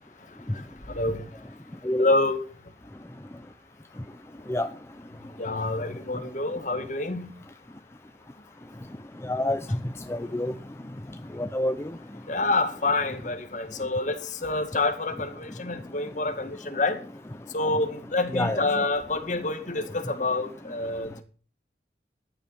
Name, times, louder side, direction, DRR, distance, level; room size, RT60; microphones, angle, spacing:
voice 1, 2.0-2.4 5.4-7.3 12.3-17.0 17.5-21.2, left 2 dB, 45° left, 6 dB, 2.2 m, -27 dB
voice 2, 9.2-9.8 10.1-10.5 11.3-12.0 18.3-18.9, left 1 dB, 15° left, 9 dB, 0.5 m, -27 dB
14.0 x 10.0 x 6.0 m, 0.40 s
head